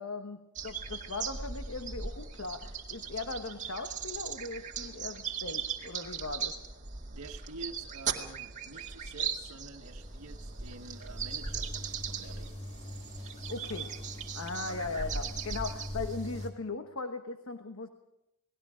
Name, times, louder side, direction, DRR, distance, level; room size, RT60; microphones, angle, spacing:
voice 1, 0.0-6.6 13.5-13.9 14.3-17.9, left 3 dB, 60° left, 7 dB, 1.2 m, -39 dB
sound 1, 0.6-16.5, right 6 dB, 35° right, 2.0 m, -39 dB
voice 2, 7.1-12.5 14.6-14.8, right 2 dB, 75° right, 1 dB, 1.6 m, -48 dB
sound 2, 9.8-16.5, left 1 dB, 30° left, 3.1 m, -44 dB
29.0 x 20.0 x 5.1 m, 0.88 s
head